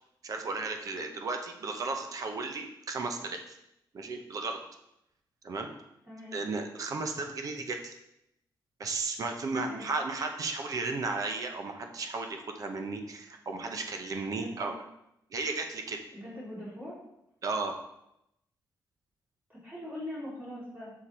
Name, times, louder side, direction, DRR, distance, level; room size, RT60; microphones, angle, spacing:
voice 1, 0.2-3.6 3.9-4.6 5.4-5.7 6.3-8.0 8.8-14.7 15.3-16.0 17.4-17.8, right 3 dB, 45° right, 5 dB, 0.8 m, -34 dB
voice 2, 6.1-6.4 9.7-9.8 14.3-14.7 16.1-17.0 19.5-20.9, left 1 dB, 20° right, -6 dB, 2.8 m, -42 dB
6.6 x 5.7 x 4.3 m, 0.84 s
wide cardioid pair, 165°, 8 cm